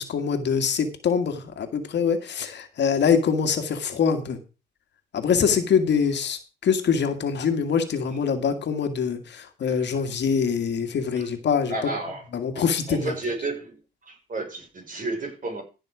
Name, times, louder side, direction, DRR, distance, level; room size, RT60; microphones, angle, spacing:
voice 1, 0.0-4.4 5.1-11.7 12.3-13.1, left 6 dB, 60° left, 2.0 m, -24 dB
voice 2, 11.7-13.8 14.1-15.6, right 2 dB, 40° right, 5.0 m, -32 dB
15.0 x 6.3 x 5.0 m
cardioid pair, 90°, 20 cm